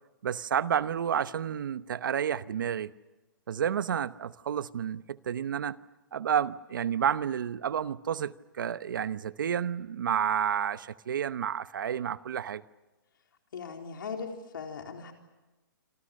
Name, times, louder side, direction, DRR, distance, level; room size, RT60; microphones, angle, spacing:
voice 1, 0.2-2.9 3.5-5.8 6.1-12.6, right 8 dB, 65° right, 1.0 m, -30 dB
voice 2, 13.5-15.1, left 5 dB, 70° left, 4.1 m, -39 dB
27.0 x 26.5 x 6.6 m
hypercardioid pair, 170°, 11 cm